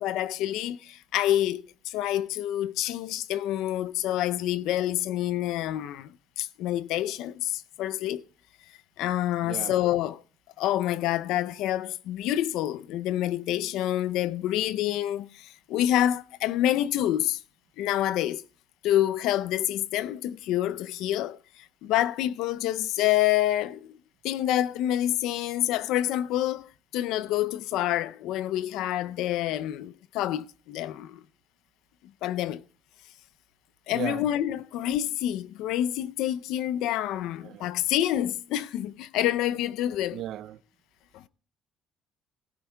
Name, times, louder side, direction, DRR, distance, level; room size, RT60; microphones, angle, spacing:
voice 1, 0.0-8.2 9.0-10.2 10.6-17.4 17.8-18.4 18.8-24.0 24.2-31.2 32.2-32.6 33.9-40.2 41.1-41.2, left 13 dB, 80° left, 0.5 m, -27 dB
voice 2, 9.4-9.8 33.9-34.3 37.4-37.7 40.1-40.6, right 12 dB, 65° right, 0.5 m, -36 dB
18.5 x 12.0 x 2.2 m
cardioid pair, 125°, 0 cm